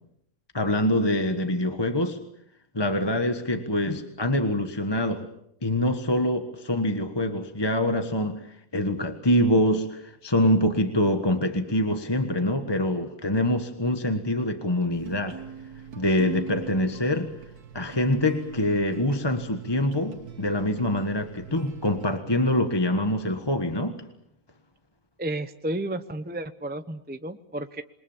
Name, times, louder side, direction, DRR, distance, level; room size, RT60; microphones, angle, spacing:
voice 1, 0.5-2.2 2.7-5.3 5.6-8.5 8.7-15.4 16.0-17.3 17.7-24.0, left 1 dB, 15° left, 1.4 m, -25 dB
sound 1, 14.9-22.2, right 7 dB, 85° right, 2.0 m, -41 dB
voice 2, 25.2-27.8, right 1 dB, 10° right, 0.6 m, -32 dB
27.5 x 22.0 x 7.3 m
omnidirectional pair, 1.6 m